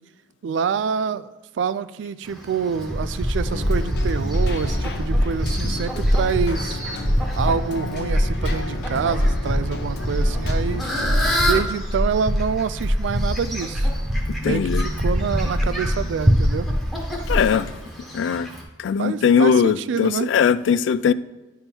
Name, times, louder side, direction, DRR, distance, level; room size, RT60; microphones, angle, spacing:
voice 1, 0.4-6.8 7.3-10.9 11.4-13.9 14.4-16.7 19.0-20.3, right 6 dB, 85° right, 0.3 m, -26 dB
Fowl, 2.2-18.6, equal, ahead, 1.1 m, -33 dB
sound 1, 2.7-17.4, equal, 20° right, 0.7 m, -23 dB
Keyboard (musical), 3.5-11.5, left 2 dB, 60° left, 0.7 m, -34 dB
voice 2, 14.3-14.8 17.3-17.7 18.1-18.5 18.8-21.1, left 6 dB, 85° left, 0.3 m, -20 dB
10.0 x 3.5 x 4.4 m
head